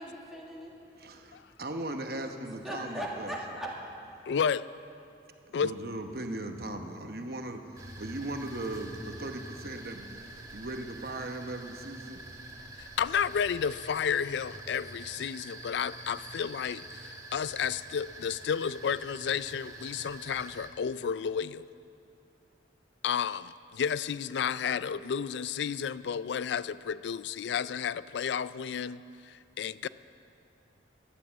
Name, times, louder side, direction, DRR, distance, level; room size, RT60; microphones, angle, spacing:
voice 1, 0.0-0.7 2.4-3.7, right 1 dB, ahead, -4 dB, 1.8 m, -38 dB
voice 2, 1.6-3.3 5.4-12.2, right 1 dB, 55° right, 5 dB, 1.0 m, -38 dB
voice 3, 4.3-4.7 5.5-5.7 12.8-21.7 23.0-29.9, left 7 dB, 75° left, 17 dB, 0.3 m, -32 dB
sound 1, 7.8-20.7, right 2 dB, 20° right, 1.2 m, -46 dB
13.5 x 10.5 x 7.3 m, 2.6 s
head